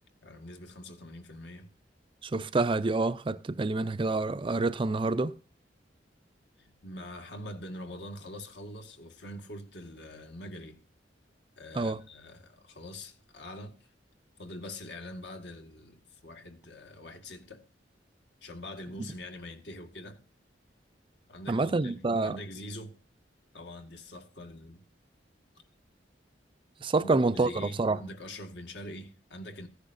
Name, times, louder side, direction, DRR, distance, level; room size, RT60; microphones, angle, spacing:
voice 1, 0.2-1.7 6.6-10.8 11.6-13.8 14.4-17.6 18.4-20.2 21.3-23.0 23.5-24.8 27.0-29.7, left 1 dB, 70° left, 1.8 m, -44 dB
voice 2, 2.2-5.3 11.7-12.0 21.5-22.4 26.8-28.0, right 3 dB, 30° right, 0.4 m, -27 dB
15.5 x 10.0 x 2.6 m
head